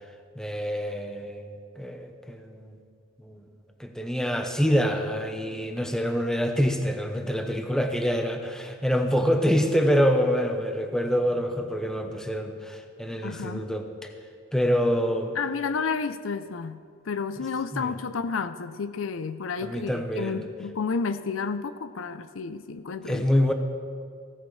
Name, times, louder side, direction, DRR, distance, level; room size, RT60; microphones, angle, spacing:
voice 1, 0.4-2.8 3.2-3.5 3.8-14.1 14.5-15.4 17.7-17.9 19.6-20.4 23.1-23.5, equal, 5° left, 4 dB, 0.8 m, -26 dB
voice 2, 13.2-13.7 15.4-23.3, left 5 dB, 90° left, 12 dB, 0.5 m, -31 dB
16.5 x 13.0 x 3.2 m, 2.1 s
head